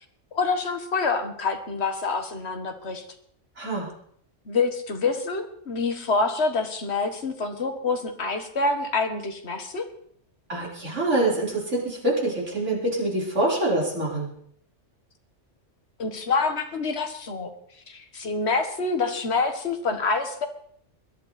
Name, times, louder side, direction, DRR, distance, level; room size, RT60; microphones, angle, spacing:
voice 1, 0.3-3.0 4.5-9.8 16.0-17.5 17.9-20.5, left 4 dB, 60° left, 6 dB, 1.8 m, -26 dB
voice 2, 3.6-3.9 10.5-14.3, right 2 dB, 70° right, -4 dB, 5.0 m, -25 dB
21.0 x 11.5 x 4.2 m, 0.64 s
omnidirectional pair, 1.3 m